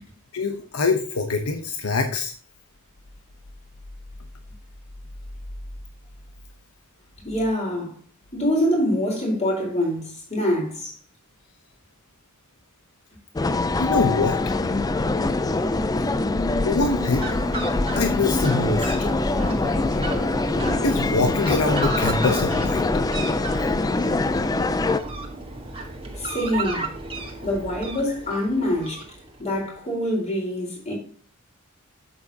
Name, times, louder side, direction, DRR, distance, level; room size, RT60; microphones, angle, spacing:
voice 1, 0.3-2.3 13.8-14.4 16.6-17.3 17.9-18.9 20.1-20.3 20.8-22.8, left 3 dB, 90° left, 0.9 m, -24 dB
voice 2, 7.2-8.0 8.3-10.0 10.3-10.9 26.2-26.9 27.4-29.0 29.4-30.9, left 1 dB, 30° left, 4.2 m, -25 dB
sound 1, 13.4-25.0, left 2 dB, 15° left, 0.4 m, -23 dB
Fowl, 16.5-29.5, right 2 dB, 25° right, 1.5 m, -34 dB
8.5 x 7.5 x 2.8 m
head